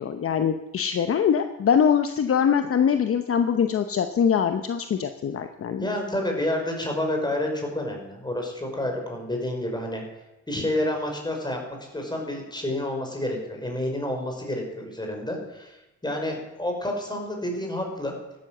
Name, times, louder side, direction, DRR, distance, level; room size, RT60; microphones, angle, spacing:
voice 1, 0.0-5.8, left 7 dB, 50° left, 8 dB, 0.9 m, -23 dB
voice 2, 5.8-10.0 10.5-11.6 11.9-15.8 16.0-18.1, left 1 dB, 15° left, 1 dB, 5.6 m, -29 dB
13.5 x 12.5 x 7.9 m, 0.97 s
cardioid pair, 90°, 30 cm